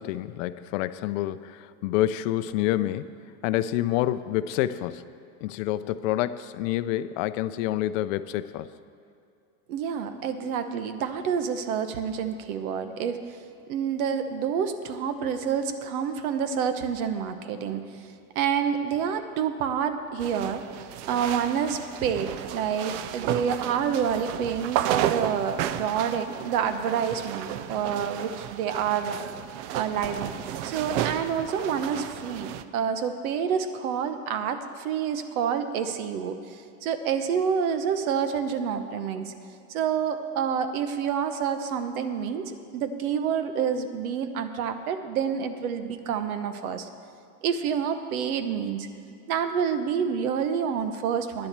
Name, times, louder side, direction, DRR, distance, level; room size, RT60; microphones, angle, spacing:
voice 1, 0.0-3.2 3.4-5.0 5.4-8.7, left 13 dB, 60° left, 14 dB, 0.5 m, -28 dB
voice 2, 9.7-13.2 13.7-18.0 18.3-20.6 21.1-29.2 29.7-30.3 30.6-39.3 39.7-46.9 47.4-48.9 49.3-51.5, right 7 dB, 75° right, 9 dB, 1.1 m, -28 dB
sound 1, 20.2-32.6, right 11 dB, 55° right, 0.6 m, -33 dB
10.5 x 7.1 x 8.0 m, 2.5 s
supercardioid pair, 140°, 44 cm